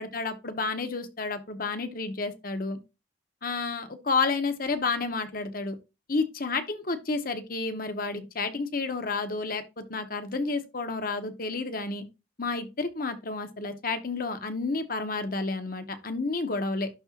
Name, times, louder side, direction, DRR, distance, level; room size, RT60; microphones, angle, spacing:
voice 1, 0.0-2.8 3.4-5.8 6.1-12.1 12.4-16.9, left 3 dB, 50° left, 1.1 m, -30 dB
11.5 x 4.4 x 2.5 m
head